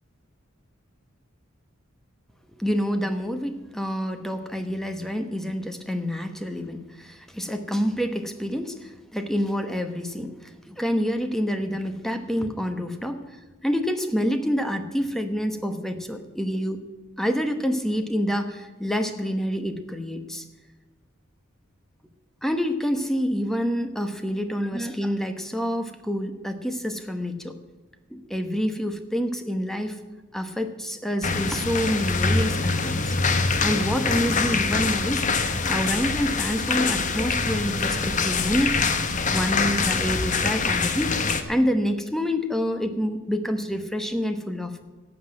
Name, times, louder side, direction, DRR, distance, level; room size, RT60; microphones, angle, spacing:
voice 1, 2.6-16.8 17.2-20.4 22.4-27.6 28.1-30.0 30.3-33.1 33.6-35.3 35.7-38.8 39.3-41.2 41.5-44.8, equal, ahead, 7 dB, 1.0 m, -27 dB
sound 1, 31.2-41.4, left 4 dB, 40° left, 0.9 m, -24 dB
12.0 x 7.8 x 8.6 m, 1.3 s
head